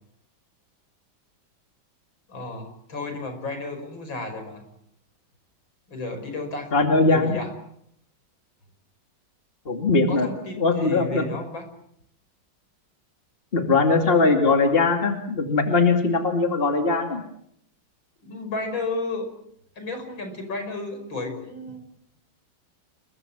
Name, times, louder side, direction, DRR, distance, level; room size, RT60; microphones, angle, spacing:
voice 1, 2.3-4.6 5.9-6.7 7.1-7.5 10.1-11.7 18.2-19.3 19.8-21.8, left 2 dB, 65° left, 6 dB, 6.3 m, -32 dB
voice 2, 6.7-7.3 9.7-10.3 10.6-11.2 13.5-17.2, left 3 dB, 25° left, 4 dB, 2.6 m, -20 dB
29.0 x 22.5 x 7.4 m, 0.72 s
omnidirectional pair, 2.2 m